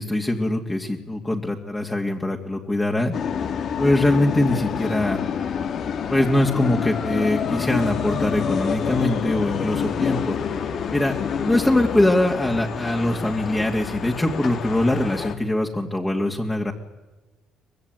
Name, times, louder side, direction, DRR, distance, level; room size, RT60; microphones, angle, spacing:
voice 1, 0.0-3.1 3.8-5.2 6.1-10.4 10.9-11.1 11.4-16.7, left 1 dB, 15° left, 0 dB, 2.5 m, -22 dB
sound 1, 3.1-15.4, left 7 dB, 60° left, 2.5 m, -27 dB
24.0 x 20.5 x 9.3 m, 1.1 s
cardioid pair, 90°, 0 cm